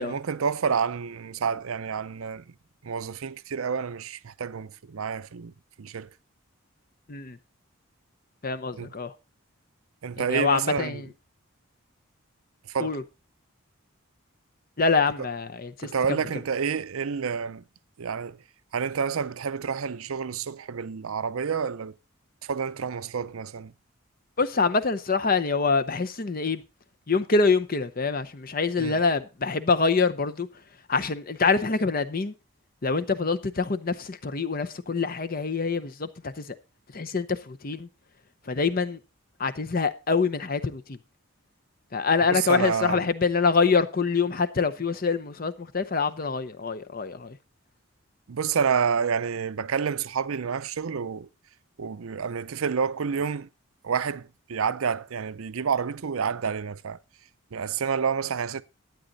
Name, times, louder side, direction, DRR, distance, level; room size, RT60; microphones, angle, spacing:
voice 1, 0.0-2.4 2.8-5.5 5.8-6.1 8.8-8.9 10.0-11.0 12.7-13.0 15.8-17.6 18.0-18.4 18.7-21.9 22.4-23.7 28.8-29.0 42.3-43.1 48.3-51.3 51.8-53.5 53.8-57.0 57.5-58.6, right 6 dB, 85° right, 0.6 m, -29 dB
voice 2, 8.4-9.1 10.3-11.1 12.8-13.0 14.8-15.9 24.4-26.6 27.1-30.5 30.9-32.3 32.8-36.5 36.9-37.9 38.5-39.0 39.4-41.0 41.9-47.4, left 4 dB, 45° left, 0.8 m, -25 dB
12.0 x 9.1 x 4.0 m
head